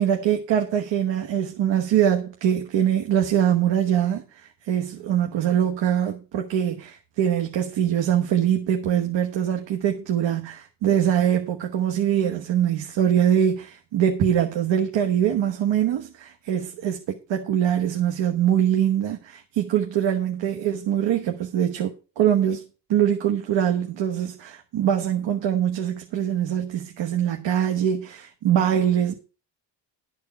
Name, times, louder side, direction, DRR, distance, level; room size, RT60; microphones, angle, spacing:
voice 1, 0.0-22.6 22.9-29.2, right 10 dB, 85° right, 1.2 m, -23 dB
12.0 x 4.6 x 7.0 m
cardioid pair, 170°, 44 cm